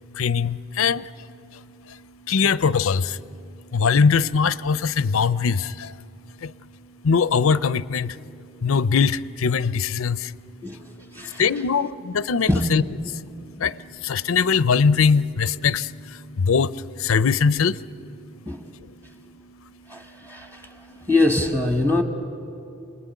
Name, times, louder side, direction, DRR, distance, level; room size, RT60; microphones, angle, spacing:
voice 1, 0.0-21.1, left 5 dB, 85° left, 0.5 m, -23 dB
voice 2, 19.9-20.8 21.1-22.0, left 2 dB, 15° right, 1.2 m, -23 dB
28.0 x 21.0 x 9.2 m
head